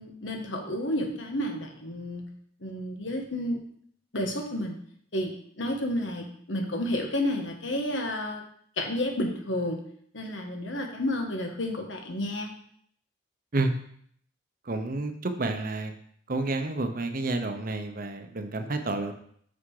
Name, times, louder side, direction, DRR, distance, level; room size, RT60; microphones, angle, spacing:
voice 1, 0.0-2.3 2.6-3.6 4.1-4.7 5.1-8.4 8.8-9.8 10.1-12.5, left 1 dB, 85° left, 2 dB, 1.5 m, -31 dB
voice 2, 14.6-15.9 16.3-19.1, right 2 dB, 50° right, 7 dB, 0.8 m, -30 dB
6.9 x 6.0 x 4.9 m, 0.64 s
head